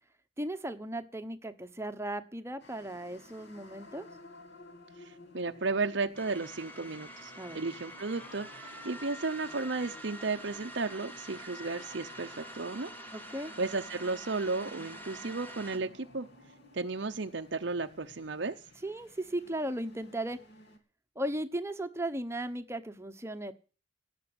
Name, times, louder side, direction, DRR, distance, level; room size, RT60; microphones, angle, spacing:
voice 1, 0.4-4.1 7.4-7.6 13.1-13.5 18.8-20.4 21.2-23.5, right 1 dB, 10° right, 9 dB, 1.0 m, -36 dB
sound 1, 2.6-20.8, left 2 dB, 55° left, 2.8 m, -54 dB
voice 2, 5.0-12.9 13.6-16.3 16.7-18.6, right 3 dB, 55° right, 5 dB, 0.8 m, -34 dB
sound 2, 6.1-15.8, right 1 dB, 10° left, 1.6 m, -46 dB
17.5 x 6.9 x 7.9 m, 0.38 s
head